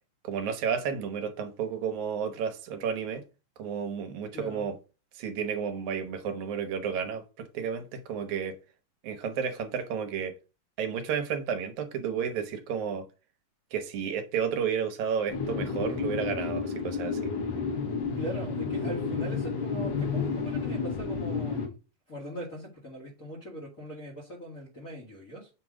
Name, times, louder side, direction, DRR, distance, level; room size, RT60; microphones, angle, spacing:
voice 1, 0.2-3.2 3.6-4.8 5.1-8.6 9.0-10.4 10.8-13.1 13.7-17.3, right 7 dB, 75° right, 2.3 m, -32 dB
voice 2, 4.3-4.7 18.2-21.7 22.1-25.5, equal, 35° left, 1.5 m, -40 dB
sound 1, 15.3-21.7, left 5 dB, 90° left, 3.6 m, -31 dB
7.7 x 3.0 x 4.8 m
omnidirectional pair, 3.5 m